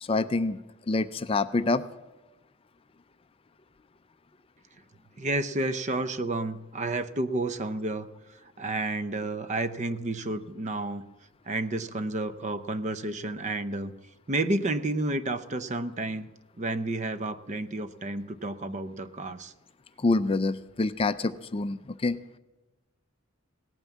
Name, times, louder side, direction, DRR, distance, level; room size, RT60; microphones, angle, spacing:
voice 1, 0.0-0.6 0.9-1.8 20.0-22.2, left 3 dB, 25° left, 12 dB, 0.4 m, -26 dB
voice 2, 5.2-8.1 8.6-11.0 11.5-13.9 14.3-16.3 16.6-19.5, right 2 dB, 35° right, 13 dB, 0.6 m, -31 dB
17.5 x 9.1 x 7.2 m, 1.1 s
head